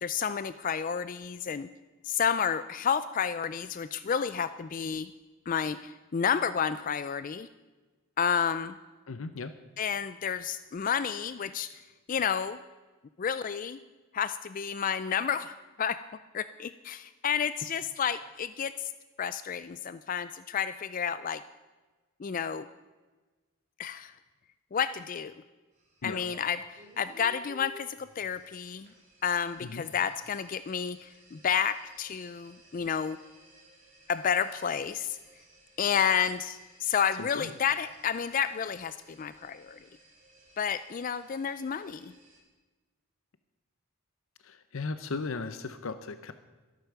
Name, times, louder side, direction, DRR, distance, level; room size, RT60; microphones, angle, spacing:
voice 1, 0.0-1.7 2.0-5.1 5.5-7.5 8.2-8.8 9.8-11.8 12.1-12.6 13.2-13.8 14.1-16.0 16.3-18.9 19.2-21.4 22.2-22.7 23.8-24.1 24.7-25.3 26.0-28.9 29.2-33.2 34.1-35.2 35.8-39.8 40.6-42.1, left 7 dB, 40° left, 14 dB, 0.3 m, -30 dB
voice 2, 9.1-9.5 26.0-26.2 29.6-29.8 37.2-37.5 44.4-46.3, left 3 dB, 70° left, 11 dB, 0.7 m, -36 dB
sound 1, 25.7-42.4, right 1 dB, 35° right, 3.7 m, -57 dB
13.0 x 11.5 x 6.8 m, 1.3 s
head